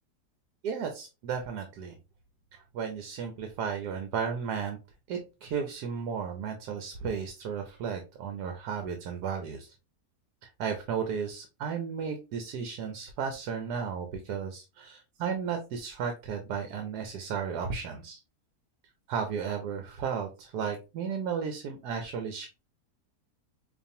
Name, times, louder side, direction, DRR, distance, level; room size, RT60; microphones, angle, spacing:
voice 1, 0.6-2.0 2.5-4.8 5.1-9.7 10.4-18.2 19.1-22.5, right 6 dB, 85° right, 5 dB, 1.2 m, -34 dB
5.0 x 2.5 x 2.7 m, 0.29 s
omnidirectional pair, 1.7 m